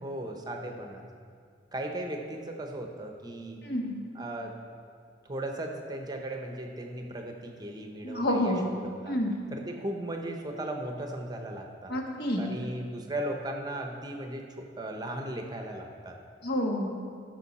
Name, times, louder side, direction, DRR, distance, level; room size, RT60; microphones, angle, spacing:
voice 1, 0.0-1.0 1.7-3.6 4.2-4.5 5.2-8.5 8.8-9.2 9.5-11.9 12.4-16.2, right 1 dB, 20° right, 3 dB, 0.8 m, -37 dB
voice 2, 3.6-4.0 8.0-8.7 9.1-9.3 11.9-12.5 16.4-17.0, left 1 dB, 60° left, 1 dB, 1.3 m, -29 dB
14.0 x 6.3 x 4.2 m, 2.1 s
head